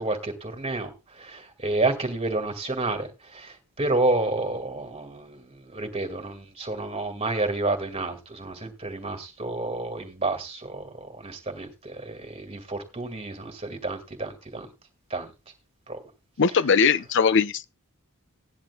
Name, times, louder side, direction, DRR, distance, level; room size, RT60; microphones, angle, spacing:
voice 1, 0.0-14.7 15.1-15.3 15.9-16.0, right 2 dB, 30° right, 2.1 m, -30 dB
voice 2, 16.4-17.7, left 6 dB, 60° left, 0.6 m, -20 dB
17.0 x 10.5 x 2.3 m
head